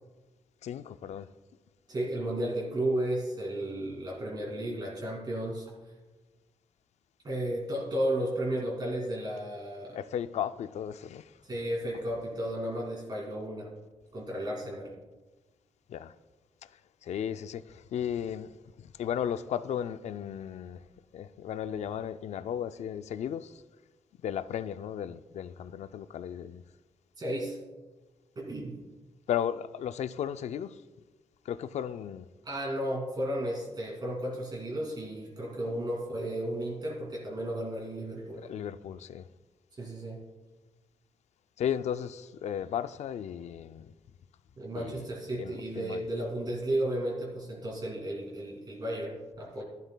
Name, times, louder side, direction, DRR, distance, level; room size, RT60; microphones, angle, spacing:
voice 1, 0.6-1.3 9.9-11.3 15.9-16.2 17.0-20.8 21.1-23.6 24.2-26.6 29.3-30.8 31.5-32.3 38.3-39.3 41.6-43.9 44.8-45.1 45.4-46.0, left 9 dB, 75° left, 0.4 m, -35 dB
voice 2, 1.9-5.7 7.2-10.0 11.5-13.7 14.1-14.9 27.2-27.6 28.4-28.7 32.4-38.4 39.8-40.2 44.6-49.6, right 1 dB, 35° right, 2.4 m, -33 dB
13.0 x 11.5 x 2.3 m
wide cardioid pair, 120°, 12 cm